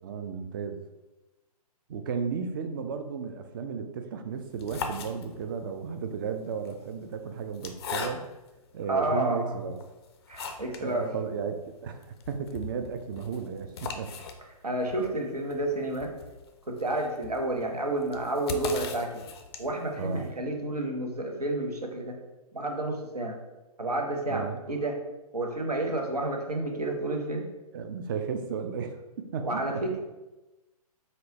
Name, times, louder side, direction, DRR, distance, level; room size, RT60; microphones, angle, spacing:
voice 1, 0.0-0.8 1.9-8.2 8.7-9.8 10.8-14.1 20.0-20.3 24.3-24.6 27.7-29.8, right 6 dB, 35° right, 7 dB, 0.4 m, -34 dB
sound 1, 4.4-5.6 6.5-8.6 9.2-9.3 9.8-10.9 11.2-11.3 11.6-11.7 12.0-19.9, left 5 dB, 40° left, 0.4 m, -39 dB
voice 2, 8.9-9.6 10.3-11.1 14.6-16.1 16.7-19.2 19.6-22.1 22.5-23.3 23.8-25.0 25.3-27.5 29.4-30.0, right 2 dB, 85° right, 2 dB, 0.8 m, -30 dB
4.3 x 2.2 x 3.9 m, 1.0 s
figure-of-eight pair, 125°, 20 cm